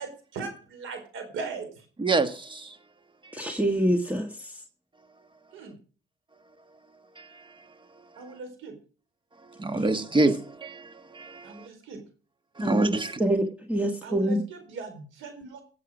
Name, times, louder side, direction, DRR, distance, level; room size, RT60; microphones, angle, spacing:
voice 1, 0.0-1.9 5.5-5.8 8.2-8.8 11.4-12.0 14.0-15.6, right 4 dB, 85° right, 4.4 m, -39 dB
voice 2, 2.0-2.8 3.2-3.4 7.2-7.7 8.1-8.3 9.4-11.7 12.6-13.2, right 2 dB, 25° right, 1.5 m, -27 dB
voice 3, 3.3-4.3 9.7-9.8 12.6-12.9 13.2-14.4, right 1 dB, 5° right, 1.5 m, -25 dB
16.5 x 7.6 x 6.2 m
cardioid pair, 90°, 20 cm